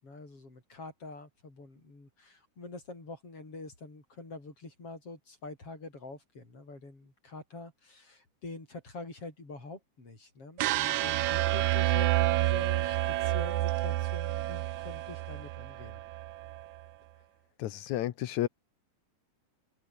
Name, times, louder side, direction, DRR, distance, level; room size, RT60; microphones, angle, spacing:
voice 1, 0.0-16.0, left 3 dB, 45° left, 8.6 m, -46 dB
sound 1, 10.6-16.7, right 15 dB, 75° right, 2.2 m, -29 dB
voice 2, 17.6-18.5, left 13 dB, 70° left, 2.4 m, -31 dB
open air
omnidirectional pair, 3.5 m